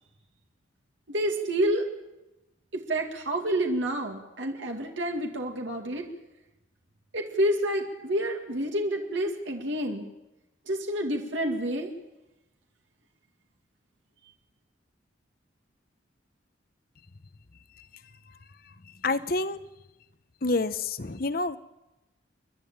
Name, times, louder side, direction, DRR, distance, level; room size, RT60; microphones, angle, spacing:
voice 1, 1.1-1.9 2.7-6.0 7.1-10.1 10.7-11.9, right 1 dB, 75° right, 2 dB, 2.2 m, -28 dB
voice 2, 19.0-19.6 20.4-21.6, left 3 dB, 50° left, 13 dB, 0.9 m, -28 dB
29.5 x 11.5 x 8.8 m, 1.0 s
head